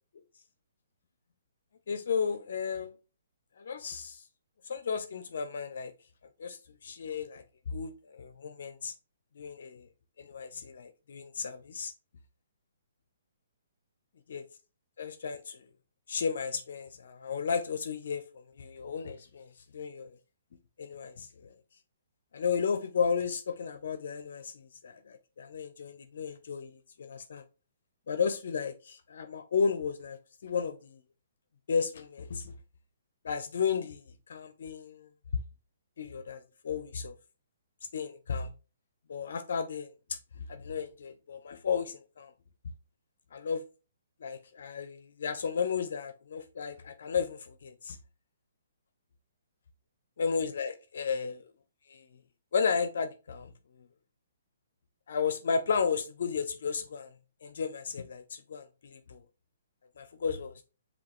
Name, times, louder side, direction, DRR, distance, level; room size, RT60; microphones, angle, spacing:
voice 1, 1.9-2.9 3.6-4.2 4.7-5.9 6.4-8.9 9.4-9.9 10.2-11.9 14.3-14.4 15.0-15.6 16.1-18.2 18.6-20.2 20.8-21.5 22.3-27.4 28.1-31.0 31.7-32.5 33.2-35.1 36.0-37.1 37.9-38.5 39.1-42.3 43.3-43.6 44.2-48.0 50.2-51.4 51.9-52.0 52.5-53.5 55.1-57.1 57.4-59.2 60.0-60.6, left 6 dB, 65° left, 0.5 m, -34 dB
5.3 x 2.7 x 3.5 m
hypercardioid pair, 145°, 0 cm